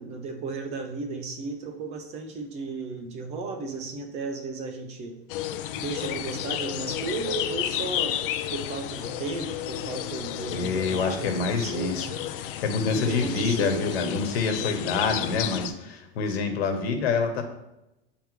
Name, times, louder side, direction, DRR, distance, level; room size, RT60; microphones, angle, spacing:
voice 1, 0.0-5.2 5.8-8.2 8.5-12.1 12.9-14.8, right 3 dB, 20° right, 5 dB, 0.4 m, -34 dB
sound 1, 5.3-15.7, left 12 dB, 60° left, 0.4 m, -32 dB
voice 2, 10.5-12.1 12.4-17.4, left 4 dB, 85° left, 5 dB, 1.2 m, -27 dB
8.6 x 3.4 x 3.2 m, 0.89 s
supercardioid pair, 160°, 30 cm